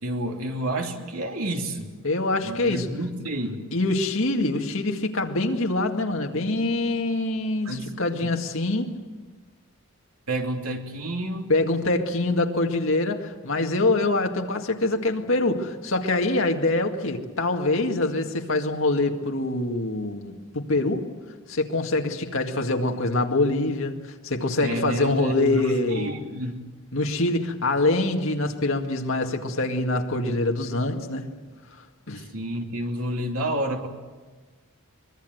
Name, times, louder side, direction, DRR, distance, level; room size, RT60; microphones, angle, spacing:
voice 1, 0.0-1.9 2.4-3.6 7.6-7.9 8.2-8.3 10.3-11.5 24.6-26.6 32.3-33.9, right 1 dB, 80° right, 2 dB, 3.0 m, -30 dB
voice 2, 2.0-2.9 3.7-9.0 11.5-21.1 21.5-26.1 26.9-31.3 32.1-32.2, left 2 dB, 65° left, 3 dB, 2.1 m, -24 dB
24.0 x 22.5 x 8.0 m, 1.4 s
head